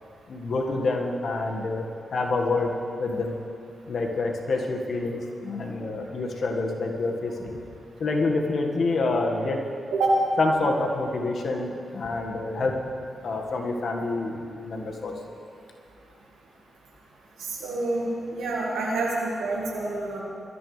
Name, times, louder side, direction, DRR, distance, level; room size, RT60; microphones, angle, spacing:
voice 1, 0.3-2.7 3.0-3.4 3.9-7.6 8.0-9.6 10.4-12.8 13.2-15.1, left 3 dB, 65° left, 1 dB, 1.8 m, -27 dB
voice 2, 17.4-20.2, right 2 dB, 85° right, -4 dB, 2.1 m, -27 dB
21.0 x 14.0 x 3.4 m, 2.5 s
supercardioid pair, 40°, 0 cm